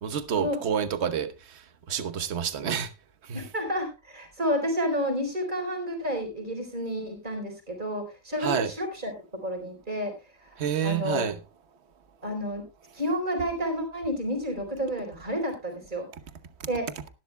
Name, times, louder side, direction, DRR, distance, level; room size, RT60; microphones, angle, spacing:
voice 1, 0.0-1.3 1.9-2.9 3.3-3.4 8.4-8.7 10.6-11.4, right 8 dB, 45° right, 1.1 m, -28 dB
voice 2, 3.3-9.1 9.4-10.1 10.4-11.3 12.2-12.6 12.9-16.1 16.7-16.9, equal, 25° right, 4.3 m, -30 dB
18.5 x 11.5 x 2.2 m
omnidirectional pair, 1.8 m